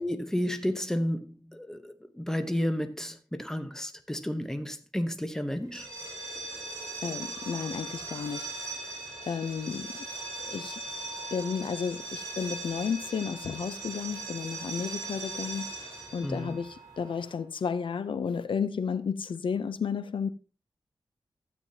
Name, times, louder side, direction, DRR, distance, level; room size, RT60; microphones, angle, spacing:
voice 1, 0.0-5.9 16.2-16.6, equal, 5° left, 0.9 m, -32 dB
sound 1, 5.7-17.4, right 3 dB, 35° right, 5.0 m, -39 dB
voice 2, 7.0-8.5 9.2-10.1 10.4-10.8 11.3-20.3, left 6 dB, 75° left, 0.5 m, -33 dB
12.5 x 8.5 x 2.7 m
wide cardioid pair, 115°, 9 cm